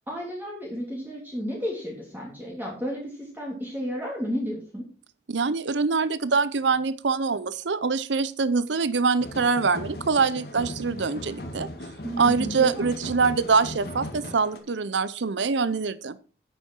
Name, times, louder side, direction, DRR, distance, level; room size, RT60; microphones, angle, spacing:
voice 1, 0.1-4.8 12.0-12.9, equal, 10° right, -3 dB, 2.8 m, -32 dB
voice 2, 5.3-11.7 12.2-16.2, right 4 dB, 85° right, 16 dB, 0.7 m, -24 dB
sound 1, 9.2-14.6, left 1 dB, 55° left, 2.2 m, -38 dB
10.5 x 8.5 x 4.5 m, 0.36 s
head